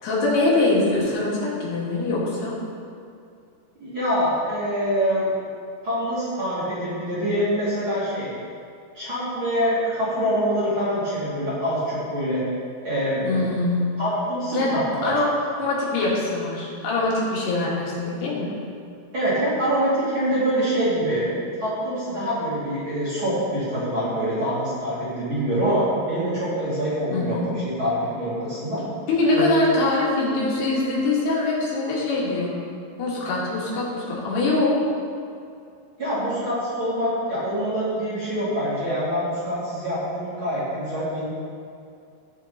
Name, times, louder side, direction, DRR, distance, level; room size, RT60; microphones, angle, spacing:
voice 1, 0.0-2.6 13.2-13.9 14.5-15.3 15.6-18.5 27.1-27.5 29.1-32.6 33.0-34.8, left 2 dB, 85° left, -5 dB, 4.0 m, -23 dB
voice 2, 3.8-5.3 5.8-8.3 8.9-12.4 12.8-13.5 14.0-15.1 19.1-28.8 29.3-29.5 36.0-41.3, equal, 35° right, -10 dB, 2.7 m, -25 dB
12.5 x 7.4 x 4.0 m, 2.4 s
omnidirectional pair, 4.6 m